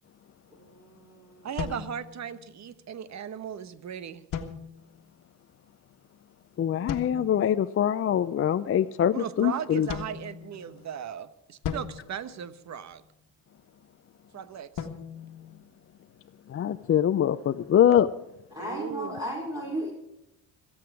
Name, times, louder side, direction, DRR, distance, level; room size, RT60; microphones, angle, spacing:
voice 1, 0.5-1.5 18.5-19.9, equal, 10° right, -2 dB, 5.0 m, -35 dB
voice 2, 1.4-4.2 9.1-13.0 14.3-14.9 18.6-19.1, right 8 dB, 45° right, 13 dB, 1.2 m, -37 dB
sound 1, 1.6-2.7 4.3-5.1 6.9-7.5 9.9-11.0 11.6-13.1 14.8-16.3, left 7 dB, 55° left, 1.7 m, -38 dB
voice 3, 6.6-9.9 16.5-18.1, left 10 dB, 35° left, 11 dB, 0.5 m, -23 dB
25.5 x 8.8 x 4.8 m, 0.85 s
supercardioid pair, 75°, 39 cm